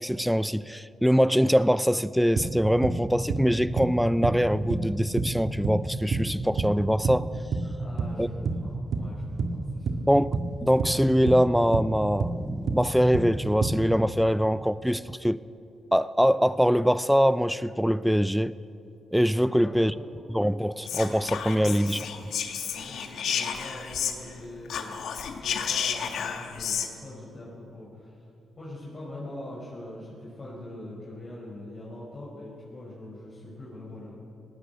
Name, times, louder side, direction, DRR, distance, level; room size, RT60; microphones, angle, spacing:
voice 1, 0.0-7.3 8.2-8.3 10.1-15.4 15.9-18.5 19.1-19.9 20.3-22.0, equal, ahead, 0.5 m, -23 dB
sound 1, 2.4-3.0 3.3-3.5 3.8-4.4 4.7-5.9 6.1-6.8 7.0-7.7 8.0-8.2 8.4-9.1 9.4-10.5 10.8-11.9 12.2-13.4 13.6-14.1, right 4 dB, 60° right, 1.9 m, -28 dB
voice 2, 7.6-10.0 19.4-20.0 21.5-22.0 22.8-25.0 25.3-28.2 28.6-34.1, left 1 dB, 35° left, 5.3 m, -43 dB
Whispering, 20.8-24.4 24.6-26.9, left 7 dB, 80° left, 1.7 m, -31 dB
19.0 x 19.0 x 8.1 m
cardioid pair, 105°, 0 cm